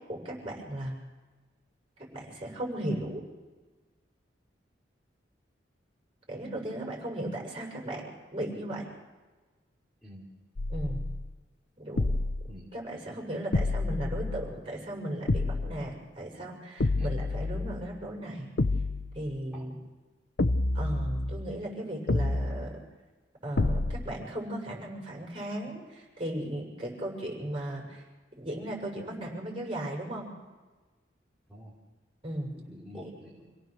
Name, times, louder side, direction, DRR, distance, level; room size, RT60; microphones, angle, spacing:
voice 1, 0.1-0.9 2.1-3.3 6.3-8.9 10.7-11.0 11.8-12.2 12.7-18.5 19.1-19.8 20.7-22.8 23.4-28.0 28.4-30.3 32.2-32.5 32.9-33.1, right 1 dB, 30° right, -1 dB, 6.7 m, -36 dB
sound 1, 10.6-11.3 12.0-12.6 13.5-14.6 15.3-15.9 16.8-17.9 18.6-19.2 20.4-21.5 22.1-22.7 23.6-24.2, left 2 dB, 65° left, 0.7 m, -29 dB
voice 2, 32.5-33.5, equal, ahead, -7 dB, 3.4 m, -47 dB
27.0 x 17.5 x 6.7 m, 1.2 s
head